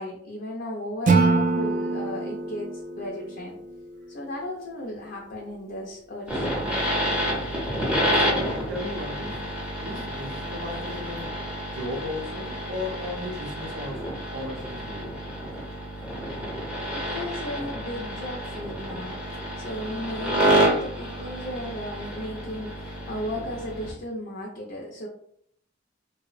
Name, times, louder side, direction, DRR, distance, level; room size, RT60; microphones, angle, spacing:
voice 1, 0.0-3.6 4.1-7.1 16.9-19.2 19.6-25.1, left 1 dB, 55° left, -2 dB, 0.4 m, -35 dB
Acoustic guitar / Strum, 1.1-4.2, right 3 dB, 45° right, 0.4 m, -25 dB
sound 1, 6.3-23.9, equal, 5° right, 0.6 m, -29 dB
voice 2, 8.2-9.5 9.8-11.3 11.7-15.2, left 1 dB, 85° right, 1 dB, 0.6 m, -35 dB
2.6 x 2.0 x 2.4 m, 0.67 s
head